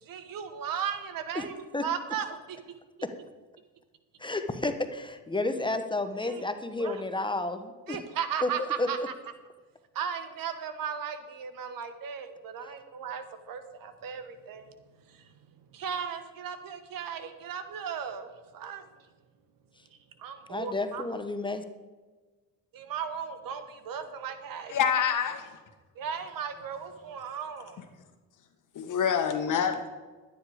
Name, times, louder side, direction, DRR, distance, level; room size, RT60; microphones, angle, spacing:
voice 1, 0.0-2.6 6.2-6.4 6.8-7.0 7.9-9.0 9.9-14.7 15.1-15.3 15.7-18.3 18.5-18.8 20.2-21.0 22.7-24.8 25.9-27.8, right 7 dB, 60° right, 9 dB, 1.6 m, -36 dB
voice 2, 4.2-8.0 8.4-9.1 20.5-21.6, left 2 dB, 10° left, 8 dB, 1.0 m, -31 dB
voice 3, 24.7-25.6 28.7-29.9, left 7 dB, 50° left, 7 dB, 1.8 m, -27 dB
11.5 x 10.0 x 5.0 m, 1.3 s
cardioid pair, 95°, 38 cm